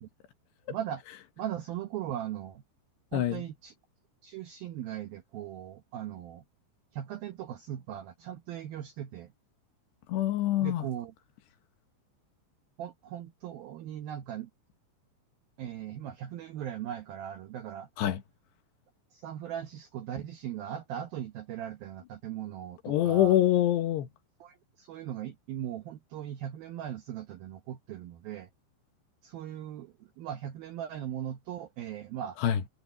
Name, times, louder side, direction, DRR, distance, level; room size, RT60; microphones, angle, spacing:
voice 1, 0.7-1.0 1.4-2.6 3.1-3.7 4.2-6.4 6.9-9.3 10.6-11.1 12.8-14.5 15.6-17.9 19.1-23.4 24.4-28.5 29.2-32.4, right 10 dB, 80° right, 2.1 m, -39 dB
voice 2, 3.1-3.4 10.1-10.9 18.0-18.2 22.8-24.1 32.4-32.6, left 12 dB, 70° left, 3.0 m, -25 dB
omnidirectional pair, 5.7 m